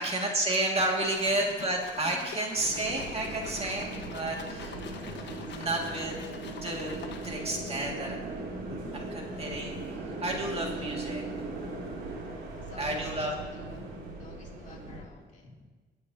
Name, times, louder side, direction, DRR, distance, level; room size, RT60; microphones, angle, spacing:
voice 1, 0.0-6.2 6.6-8.2 8.6-11.2 12.8-13.3, right 1 dB, 30° right, 0 dB, 2.1 m, -32 dB
sound 1, 0.7-7.6, left 5 dB, 65° left, 1.2 m, -45 dB
voice 2, 1.0-1.6 2.0-2.3 3.7-5.9 8.6-9.4 10.6-11.0 11.4-12.0 12.3-15.7, left 2 dB, 40° left, -3 dB, 2.8 m, -51 dB
sound 2, 2.5-15.0, right 2 dB, 85° right, 2.7 m, -39 dB
24.5 x 8.3 x 2.8 m, 1.4 s
cardioid pair, 90°, 20 cm